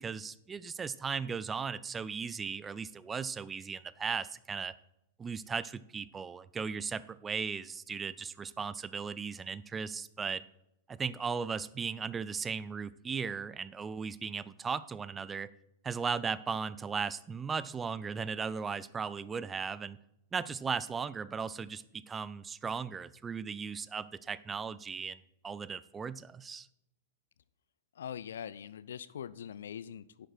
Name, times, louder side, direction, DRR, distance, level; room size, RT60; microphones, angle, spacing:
voice 1, 0.0-4.7 5.2-10.4 10.9-15.5 15.8-20.0 20.3-26.7, right 5 dB, 15° right, 17 dB, 0.5 m, -37 dB
voice 2, 28.0-30.3, left 8 dB, 65° left, 17 dB, 0.4 m, -42 dB
10.5 x 7.9 x 4.5 m, 0.82 s
figure-of-eight pair, 100°, 0 cm